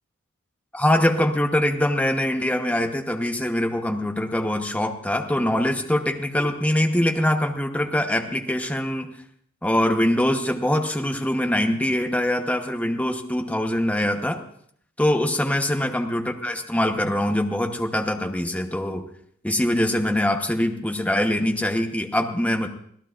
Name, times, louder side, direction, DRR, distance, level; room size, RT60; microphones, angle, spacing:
voice 1, 0.7-9.1 9.6-14.4 15.0-19.1 19.4-22.7, left 1 dB, 5° left, 4 dB, 1.0 m, -23 dB
25.5 x 16.5 x 2.5 m, 0.64 s
head